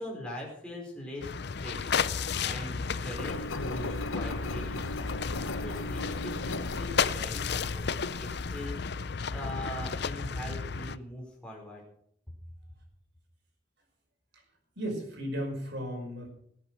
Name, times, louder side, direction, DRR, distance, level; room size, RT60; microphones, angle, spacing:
voice 1, 0.0-5.2 5.6-11.8, left 1 dB, 5° left, -3 dB, 4.9 m, -42 dB
sound 1, 1.2-11.0, left 5 dB, 55° left, 0.5 m, -33 dB
Engine, 3.2-8.7, left 2 dB, 85° left, 1.1 m, -38 dB
voice 2, 14.8-16.3, equal, 55° right, 2 dB, 5.4 m, -35 dB
19.0 x 8.8 x 6.2 m, 0.68 s
head